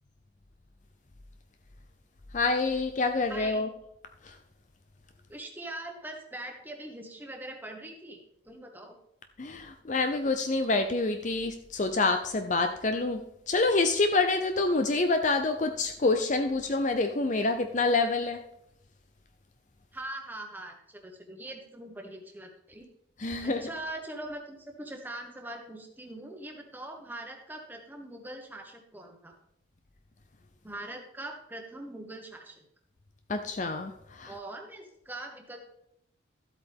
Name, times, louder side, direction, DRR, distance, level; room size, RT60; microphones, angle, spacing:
voice 1, 2.3-3.7 9.4-13.2 13.5-18.4 23.2-23.6 33.3-34.3, left 3 dB, 40° left, 6 dB, 0.6 m, -27 dB
voice 2, 3.3-3.7 5.3-8.2 8.4-9.0 19.9-22.9 23.4-29.4 30.6-32.6 34.2-35.6, right 1 dB, 10° right, 2 dB, 1.4 m, -42 dB
13.0 x 8.1 x 3.6 m, 0.77 s
head